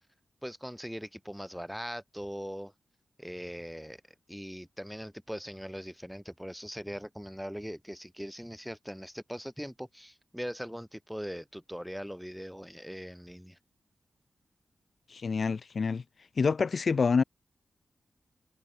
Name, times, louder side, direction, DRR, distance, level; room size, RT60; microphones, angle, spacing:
voice 1, 0.4-2.7 3.2-4.0 4.3-13.6, equal, ahead, 1.7 m, -40 dB
voice 2, 15.1-16.0 16.4-17.2, left 5 dB, 50° left, 1.0 m, -27 dB
wide cardioid pair, 130°, 0 cm